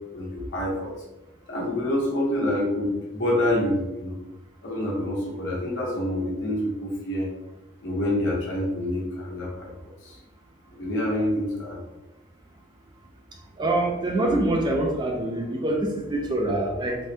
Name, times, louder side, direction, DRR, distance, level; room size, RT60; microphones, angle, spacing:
voice 1, 0.1-1.0 1.5-4.2 4.6-7.3 7.8-9.7 10.0-10.2 10.7-11.8, left 1 dB, 70° left, -3 dB, 0.9 m, -27 dB
voice 2, 13.6-17.0, right 1 dB, 20° right, 0 dB, 0.3 m, -25 dB
3.4 x 2.2 x 2.6 m, 1.0 s
head